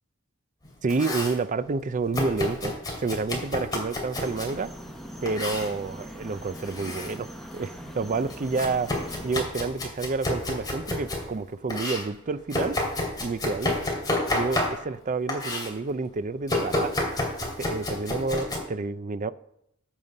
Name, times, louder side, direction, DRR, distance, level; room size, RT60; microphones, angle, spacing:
Domestic sounds home sounds, 0.6-1.4 2.1-4.6 5.3-5.7 6.5-7.2 7.5-11.3 11.7-15.0 15.3-15.7 16.5-18.6, left 1 dB, 20° left, 2.6 m, -30 dB
voice 1, 0.8-2.7 3.0-4.7 5.2-8.9 9.2-12.8 13.2-13.8 14.3-17.1 17.6-19.3, right 4 dB, 35° right, 0.4 m, -29 dB
sound 1, 4.1-9.4, equal, ahead, 1.1 m, -41 dB
14.5 x 5.6 x 5.3 m
head